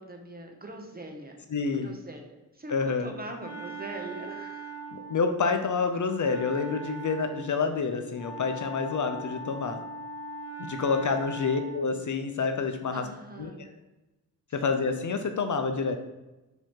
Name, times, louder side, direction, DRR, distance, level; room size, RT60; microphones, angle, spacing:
voice 1, 0.0-1.5 1.8-2.7 3.0-4.8 11.0-11.5 12.9-13.6 14.5-14.6, right 2 dB, 25° right, 3 dB, 0.7 m, -42 dB
voice 2, 1.5-1.9 2.7-3.1 4.9-9.8 10.6-13.0 13.4-13.5 14.5-16.0, left 5 dB, 50° left, 6 dB, 0.5 m, -28 dB
Wind instrument woodwind instrument, 2.9-12.0, right 2 dB, 85° left, 1.0 m, -41 dB
5.1 x 2.9 x 3.6 m, 1.0 s
wide cardioid pair, 85°, 39 cm